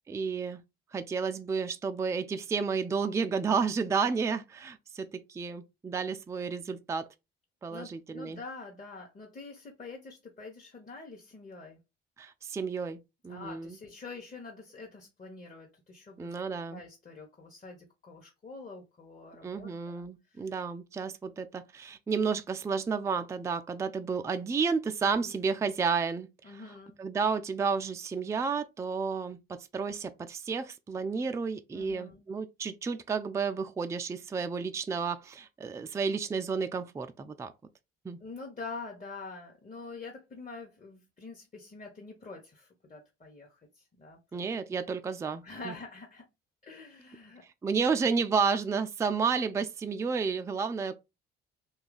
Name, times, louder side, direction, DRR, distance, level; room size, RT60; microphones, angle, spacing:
voice 1, 0.1-0.6 0.9-7.1 7.6-8.4 12.2-13.0 13.2-13.8 16.2-16.8 19.4-26.3 27.0-37.5 38.0-38.2 44.3-45.7 47.6-50.9, right 5 dB, 10° right, 0.3 m, -31 dB
voice 2, 7.7-11.8 13.3-16.4 16.7-20.5 25.0-25.4 26.4-27.0 31.7-32.3 38.2-44.4 45.4-46.3 46.6-47.4, left 3 dB, 25° left, 1.0 m, -46 dB
2.8 x 2.3 x 3.9 m
figure-of-eight pair, 45°, 31 cm